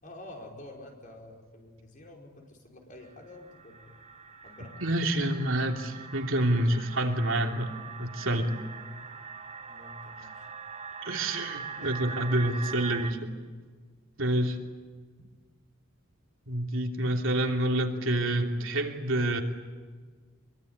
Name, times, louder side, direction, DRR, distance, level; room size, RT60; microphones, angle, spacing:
voice 1, 0.0-4.0 4.4-4.8 9.0-9.1 9.6-10.5 11.8-12.1 12.4-12.8, left 1 dB, 40° left, 1 dB, 5.4 m, -48 dB
sound 1, 3.0-13.1, right 5 dB, 30° right, 1.6 m, -42 dB
voice 2, 4.8-7.7 8.0-8.5 10.2-10.3 11.0-13.3 14.2-14.6 16.5-19.4, right 1 dB, 70° right, 2 dB, 3.0 m, -28 dB
25.5 x 23.0 x 9.7 m, 1.5 s
head